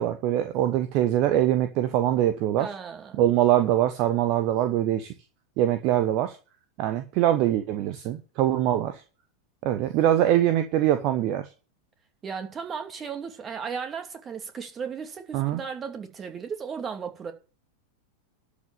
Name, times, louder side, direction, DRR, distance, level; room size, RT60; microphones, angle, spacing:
voice 1, 0.0-2.7 3.2-5.1 5.6-6.4 6.8-9.0 9.6-11.5 15.3-15.6, right 12 dB, 40° right, 1.0 m, -23 dB
voice 2, 2.6-3.2 12.2-17.3, right 6 dB, 20° right, 2.7 m, -35 dB
12.0 x 5.2 x 8.9 m
figure-of-eight pair, 90°, 0 cm